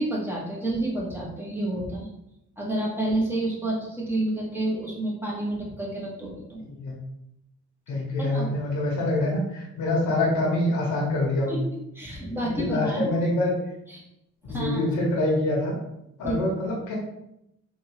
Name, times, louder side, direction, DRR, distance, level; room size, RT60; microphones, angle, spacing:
voice 1, 0.0-2.1 2.6-6.6 8.2-8.5 11.5-11.6 11.9-13.2 13.9-14.0 14.5-14.8 16.2-16.4, right 1 dB, 5° right, -4 dB, 1.3 m, -29 dB
voice 2, 6.6-7.0 7.9-11.6 12.0-13.5 14.5-15.8 16.2-16.9, left 1 dB, 75° left, -2 dB, 1.0 m, -25 dB
3.6 x 2.6 x 2.9 m, 0.83 s
cardioid pair, 90°, 30 cm